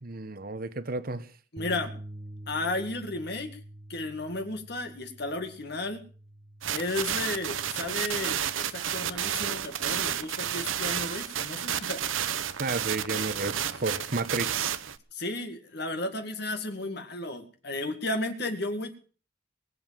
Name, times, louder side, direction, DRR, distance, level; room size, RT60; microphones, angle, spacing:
voice 1, 0.0-1.3 12.6-14.8, right 3 dB, 50° right, 1.1 m, -32 dB
voice 2, 1.5-1.9 2.5-3.5 3.9-6.0 6.7-12.1 15.1-18.9, left 2 dB, 55° left, 2.0 m, -33 dB
sound 1, 1.6-7.8, right 1 dB, 25° right, 0.8 m, -46 dB
sound 2, 6.6-15.0, right 9 dB, 90° right, 1.0 m, -31 dB
21.5 x 7.9 x 7.6 m
head